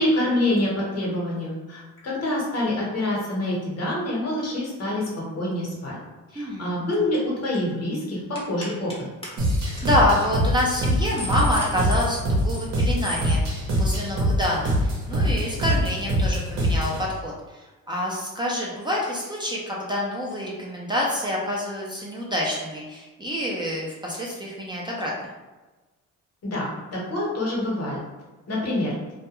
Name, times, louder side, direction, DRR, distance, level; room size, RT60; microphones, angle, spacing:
voice 1, 0.0-6.0 6.3-9.0 26.4-28.0 28.5-28.9, left 1 dB, 55° left, -4 dB, 1.0 m, -26 dB
voice 2, 6.4-6.7 9.5-25.3, left 1 dB, 15° right, -4 dB, 0.5 m, -27 dB
sound 1, 6.9-7.2 7.4-7.7 8.3-9.0 9.2-9.3 9.7-9.9 10.2-10.4 10.8-12.7 13.0-13.4, left 1 dB, 20° left, 0.7 m, -36 dB
sound 2, 9.4-17.0, equal, 65° right, 0.8 m, -24 dB
2.3 x 2.1 x 2.9 m, 1.2 s
cardioid pair, 90°, 30 cm